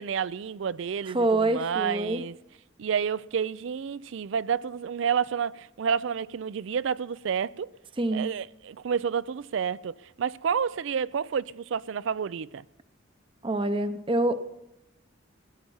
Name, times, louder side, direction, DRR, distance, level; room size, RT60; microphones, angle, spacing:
voice 1, 0.0-2.4 2.8-7.7 8.1-12.6, right 7 dB, 70° right, 0.4 m, -30 dB
voice 2, 1.1-2.2 8.0-8.3 13.4-14.4, right 2 dB, 25° right, 0.7 m, -26 dB
16.5 x 10.5 x 5.6 m
head